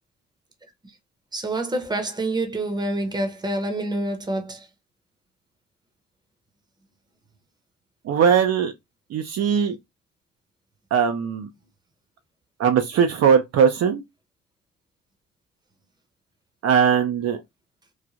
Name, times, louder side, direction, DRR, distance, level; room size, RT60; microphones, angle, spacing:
voice 1, 1.3-4.7, right 2 dB, 15° right, 0.7 m, -27 dB
voice 2, 8.1-8.7 9.1-9.8 10.9-11.5 12.6-14.0 16.6-17.4, right 7 dB, 55° right, 0.5 m, -19 dB
3.1 x 2.1 x 2.4 m
cardioid pair, 90°, 30 cm